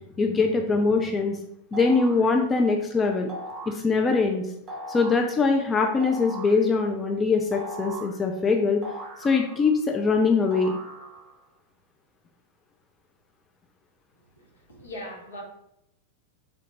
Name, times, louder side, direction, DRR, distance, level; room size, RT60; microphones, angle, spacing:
voice 1, 0.2-1.4 1.7-3.3 3.7-4.4 4.9-8.8 9.2-10.8, left 4 dB, 20° left, 3 dB, 0.3 m, -22 dB
sound 1, 1.7-2.3 3.3-3.8 4.7-5.3 6.0-6.6 7.5-8.2 8.8-9.8 10.5-11.3, right 1 dB, 30° right, 0.7 m, -38 dB
voice 2, 14.3-15.4, equal, 70° left, -1 dB, 0.9 m, -40 dB
3.3 x 2.5 x 2.9 m, 0.79 s
figure-of-eight pair, 90°, 0 cm